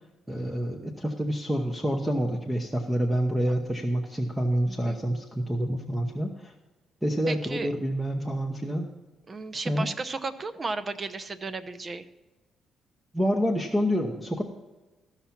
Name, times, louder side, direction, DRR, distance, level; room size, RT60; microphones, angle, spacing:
voice 1, 0.3-6.5 7.0-8.9 9.7-9.9 13.1-14.4, equal, 10° right, 3 dB, 0.9 m, -27 dB
voice 2, 7.3-7.7 9.3-12.0, right 3 dB, 35° right, 13 dB, 0.7 m, -34 dB
14.5 x 5.8 x 5.9 m, 1.2 s
cardioid pair, 90°, 0 cm